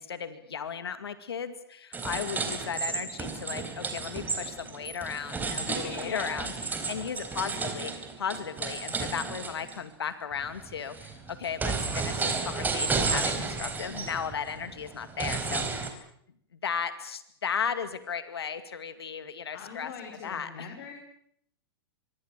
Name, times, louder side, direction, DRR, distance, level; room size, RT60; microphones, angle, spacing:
voice 1, 0.0-6.5 6.9-7.9 8.2-16.0 16.6-19.9 20.2-20.7, left 7 dB, 85° left, 11 dB, 2.3 m, -35 dB
sound 1, 1.9-9.8 10.3-15.9, right 4 dB, 15° right, 4.2 m, -32 dB
voice 2, 5.7-6.6 19.5-20.9, left 6 dB, 55° left, 4 dB, 5.6 m, -41 dB
25.5 x 23.0 x 7.4 m, 0.69 s
hypercardioid pair, 120°, 13 cm